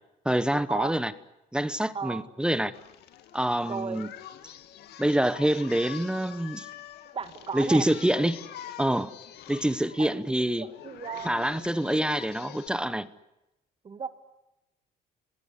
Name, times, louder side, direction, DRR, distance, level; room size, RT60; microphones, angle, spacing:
voice 1, 0.2-1.1 1.5-2.7 3.3-4.1 5.0-6.7 7.5-8.4 8.8-9.1 9.5-10.7 11.2-13.1, right 1 dB, 5° right, 1.0 m, -26 dB
voice 2, 1.9-2.3 3.7-4.0 7.1-7.9 10.0-11.3 11.8-12.1 13.8-14.1, right 6 dB, 35° right, 2.2 m, -35 dB
Singing, 2.7-12.7, left 11 dB, 75° left, 2.0 m, -45 dB
26.5 x 19.5 x 10.0 m
cardioid pair, 110°, 17 cm